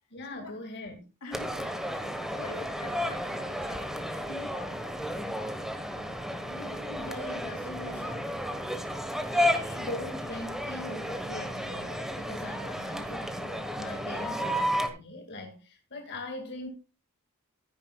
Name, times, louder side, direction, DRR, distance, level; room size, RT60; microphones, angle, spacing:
voice 1, 0.1-1.0 6.5-8.3 8.9-16.7, left 2 dB, 50° left, 1.9 m, -41 dB
voice 2, 1.2-5.2 14.1-14.6, left 3 dB, 80° left, 3.1 m, -46 dB
sound 1, 1.3-14.9, equal, ahead, 1.2 m, -33 dB
15.0 x 9.7 x 2.3 m
head